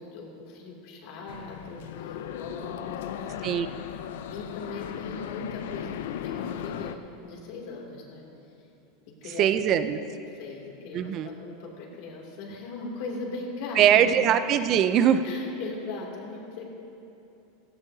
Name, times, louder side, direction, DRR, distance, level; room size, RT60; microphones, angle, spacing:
voice 1, 0.0-3.5 4.3-6.9 7.2-8.2 9.2-9.8 10.3-14.2 15.2-16.7, left 3 dB, 50° left, -1 dB, 2.7 m, -39 dB
sound 1, 1.3-7.0, left 9 dB, 75° left, 0.6 m, -36 dB
voice 2, 9.4-10.0 10.9-11.3 13.8-15.2, right 9 dB, 30° right, 11 dB, 0.5 m, -21 dB
16.5 x 16.0 x 2.8 m, 2.8 s
supercardioid pair, 170°, 0 cm